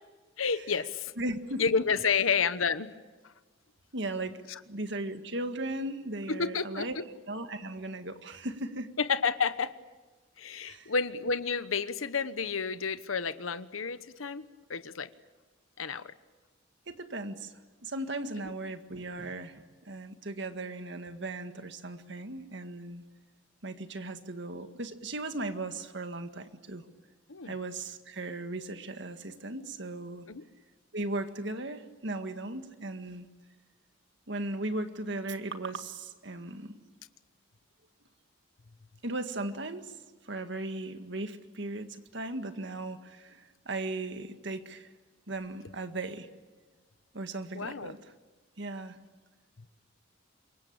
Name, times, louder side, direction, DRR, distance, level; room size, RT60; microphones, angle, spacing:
voice 1, 0.4-1.1 1.6-2.9 3.2-3.3 6.3-7.0 9.0-9.7 10.4-15.1 15.8-16.1 18.4-18.5 27.3-27.5 30.3-30.4 47.5-47.9, left 5 dB, 90° left, 13 dB, 1.1 m, -30 dB
voice 2, 1.2-1.6 3.9-7.0 7.3-8.9 10.6-10.9 16.9-17.5 17.8-23.0 23.6-26.8 27.5-30.3 30.9-33.3 34.3-36.7 39.0-39.9 40.2-44.9 45.3-46.3 47.1-48.0 48.6-49.0, right 2 dB, 60° right, 8 dB, 1.9 m, -37 dB
27.0 x 23.0 x 8.8 m, 1.3 s
head